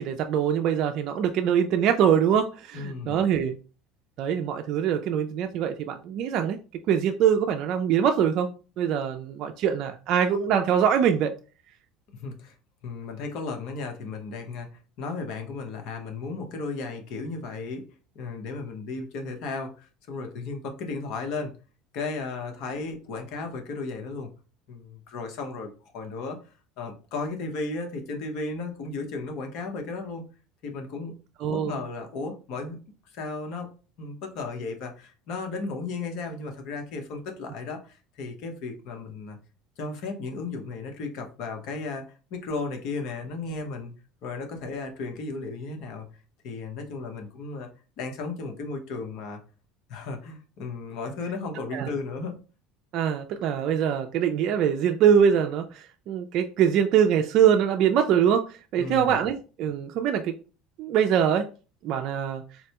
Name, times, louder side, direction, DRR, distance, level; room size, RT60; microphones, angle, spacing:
voice 1, 0.0-3.6 4.2-6.6 6.9-8.5 8.8-11.3 31.4-31.7 51.7-51.9 52.9-60.3 60.8-61.5 61.8-62.4, right 8 dB, 55° right, 0.3 m, -23 dB
voice 2, 2.7-3.2 12.1-12.5 12.8-14.7 15.0-17.8 18.1-21.5 21.9-24.3 24.7-26.4 26.8-30.3 30.6-31.2 31.5-32.8 33.1-33.7 34.0-39.4 39.8-43.9 44.2-46.1 46.4-47.7 48.0-49.4 49.9-52.4 58.8-59.2, left 3 dB, 65° left, 0.9 m, -35 dB
4.1 x 2.1 x 2.9 m
supercardioid pair, 110°, 0 cm